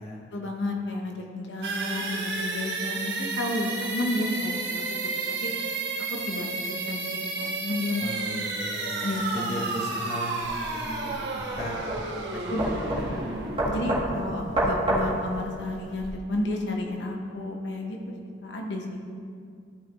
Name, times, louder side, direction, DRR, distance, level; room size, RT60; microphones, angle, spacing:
voice 1, 0.3-4.8 5.4-5.5 6.2-8.1 9.0-9.5 12.5-13.2 13.6-18.0 18.4-19.0, left 1 dB, 70° left, 1 dB, 1.1 m, -31 dB
sound 1, 1.6-15.3, right 3 dB, 70° right, 1.3 m, -32 dB
voice 2, 8.0-12.9 14.1-14.6, left 1 dB, 35° left, -2 dB, 0.9 m, -38 dB
sound 2, 10.4-16.1, right 1 dB, 30° right, 1.6 m, -29 dB
13.5 x 5.6 x 3.1 m, 2.3 s
head